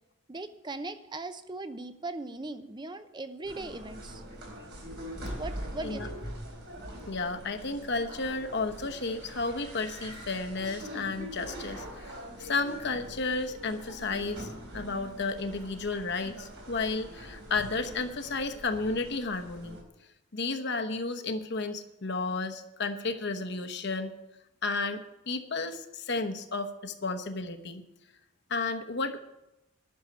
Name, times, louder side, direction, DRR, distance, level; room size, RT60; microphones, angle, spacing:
voice 1, 0.3-4.2 5.4-6.2, right 2 dB, 20° right, 10 dB, 0.7 m, -39 dB
sound 1, 3.4-19.8, equal, 55° right, 4.1 m, -43 dB
voice 2, 7.1-19.8 20.3-24.1 24.6-27.8 28.5-29.2, left 3 dB, 55° left, 7 dB, 1.0 m, -32 dB
11.0 x 6.6 x 9.4 m, 0.92 s
head